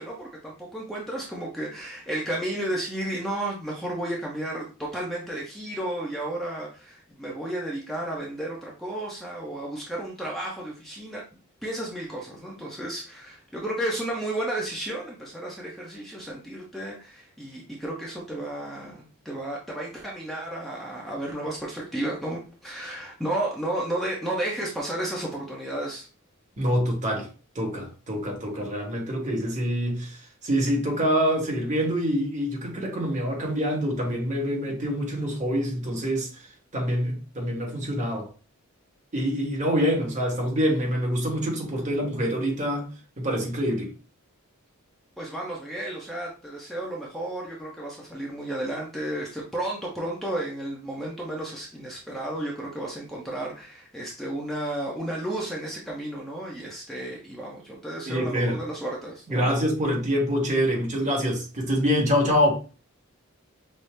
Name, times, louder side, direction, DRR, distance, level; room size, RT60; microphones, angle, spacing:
voice 1, 0.0-11.2 11.6-26.1 45.2-59.5, right 1 dB, ahead, 0.7 m, -33 dB
voice 2, 26.6-27.3 27.5-36.5 36.7-38.3 39.1-42.9 43.2-43.9 58.0-58.6 59.3-62.6, equal, 35° right, 1.2 m, -26 dB
5.4 x 2.0 x 3.2 m
head